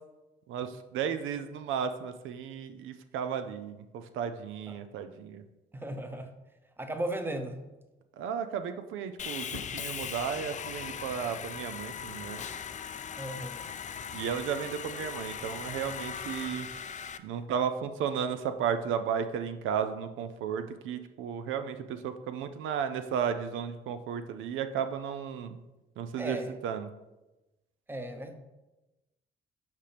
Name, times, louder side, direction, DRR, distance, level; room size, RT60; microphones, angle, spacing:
voice 1, 0.5-5.4 8.2-12.4 14.1-16.7 17.2-25.6 26.0-26.4 26.6-26.9, right 7 dB, 85° right, 9 dB, 0.5 m, -34 dB
voice 2, 5.7-6.3 6.8-7.6 13.2-13.6 26.2-26.5 27.9-28.3, right 1 dB, 10° right, 7 dB, 0.8 m, -36 dB
Sawing, 9.2-17.2, left 7 dB, 40° left, 0.4 m, -39 dB
8.1 x 5.1 x 3.4 m, 1.0 s
cardioid pair, 90°, 20 cm